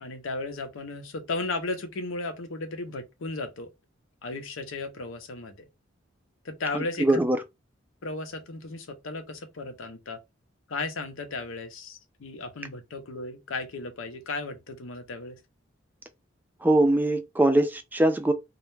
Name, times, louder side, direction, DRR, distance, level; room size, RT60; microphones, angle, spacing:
voice 1, 0.0-3.7 4.2-5.7 6.4-7.2 8.0-10.2 10.7-15.4, left 3 dB, 85° left, 0.6 m, -35 dB
voice 2, 6.7-7.4 16.6-18.3, right 1 dB, 10° right, 0.3 m, -22 dB
2.3 x 2.1 x 3.1 m
head